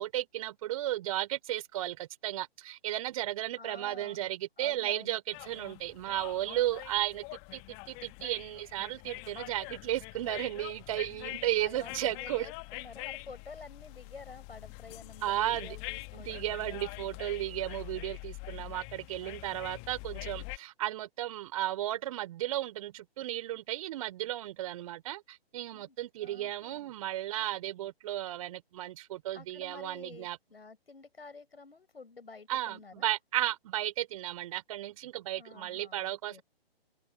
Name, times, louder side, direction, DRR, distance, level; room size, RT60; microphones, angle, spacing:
voice 1, 0.0-7.2 7.5-12.5 15.2-15.8 16.1-30.4 32.5-36.4, right 14 dB, 35° right, 3.3 m, -34 dB
voice 2, 3.6-4.2 4.6-5.2 11.0-17.1 25.7-26.0 26.2-26.9 29.3-33.1 35.4-36.4, left 4 dB, 70° left, 7.0 m, -50 dB
sound 1, 5.3-20.6, left 32 dB, 20° left, 1.5 m, -45 dB
figure-of-eight pair, 135°, 31 cm